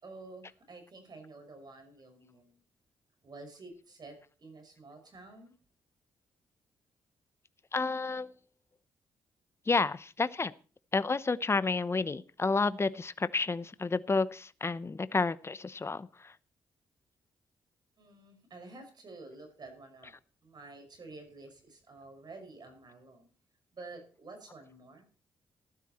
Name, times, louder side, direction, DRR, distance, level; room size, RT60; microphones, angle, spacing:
voice 1, 0.0-2.6 3.2-5.5 18.0-20.1 20.4-23.3 23.7-25.0, right 3 dB, 50° right, 6 dB, 5.9 m, -50 dB
voice 2, 7.7-8.3 9.7-10.5 10.9-16.3, left 4 dB, 30° left, 17 dB, 0.8 m, -30 dB
14.5 x 12.0 x 4.3 m, 0.37 s
hypercardioid pair, 45°, 9 cm